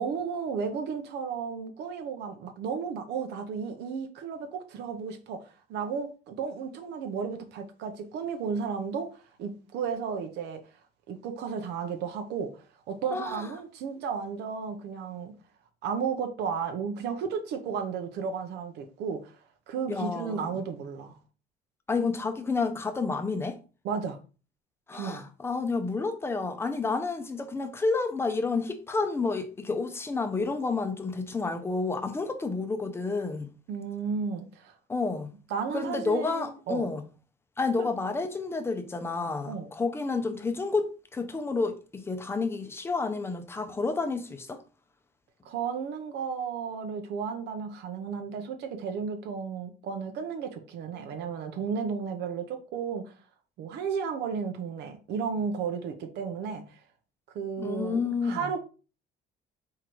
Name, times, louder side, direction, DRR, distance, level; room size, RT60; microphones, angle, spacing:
voice 1, 0.0-10.6 11.1-15.3 15.8-19.4 19.7-21.2 23.8-24.2 24.9-25.3 33.7-34.8 35.5-36.9 37.8-37.9 39.5-39.7 45.4-53.1 53.6-56.8 57.3-58.6, right 6 dB, 70° right, 0.7 m, -33 dB
voice 2, 13.1-13.5 19.9-20.6 21.9-23.6 24.9-33.5 34.9-35.3 35.7-37.0 37.6-44.6 57.6-58.4, left 4 dB, 15° left, 0.6 m, -30 dB
4.5 x 3.8 x 3.1 m
cardioid pair, 150°, 18 cm